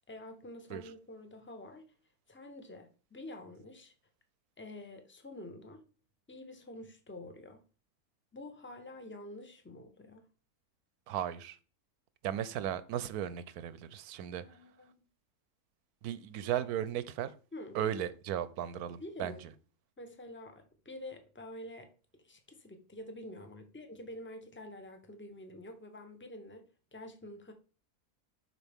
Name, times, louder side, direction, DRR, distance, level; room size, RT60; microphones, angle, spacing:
voice 1, 0.1-1.8 2.3-3.9 4.6-5.8 6.3-7.6 8.3-10.3 14.4-15.0 17.5-17.8 19.0-19.4 20.0-26.6 26.9-27.5, left 1 dB, 10° left, 0.8 m, -48 dB
voice 2, 11.1-11.6 12.2-14.6 16.0-17.3 17.7-19.5, right 10 dB, 90° right, 1.2 m, -36 dB
11.5 x 4.6 x 3.5 m
omnidirectional pair, 1.6 m